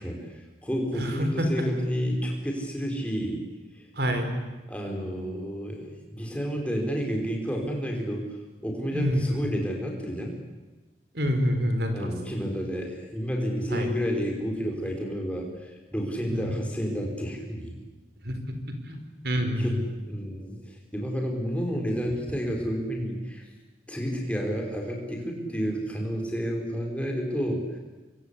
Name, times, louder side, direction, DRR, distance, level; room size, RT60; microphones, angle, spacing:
voice 1, 0.0-3.4 3.8-3.9 4.7-8.3 8.6-10.3 11.9-17.8 19.6-23.4 23.9-27.8, equal, 5° left, 0 dB, 5.1 m, -30 dB
voice 2, 0.9-1.5 4.0-4.3 8.9-9.4 11.1-12.1 13.7-13.9 16.3-16.5 18.2-18.3 18.7-19.8, equal, 65° right, 6 dB, 4.4 m, -27 dB
26.5 x 23.0 x 8.5 m, 1.2 s
head